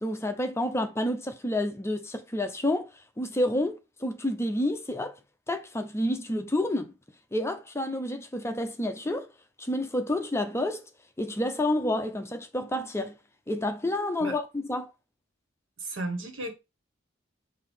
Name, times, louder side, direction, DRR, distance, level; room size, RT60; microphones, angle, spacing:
voice 1, 0.0-2.9 3.2-5.1 5.5-6.9 7.3-9.3 9.6-10.8 11.2-13.1 13.5-14.9, left 1 dB, 15° left, 0.6 m, -29 dB
voice 2, 15.8-16.5, right 2 dB, 70° right, 1.6 m, -34 dB
6.4 x 2.7 x 5.4 m
head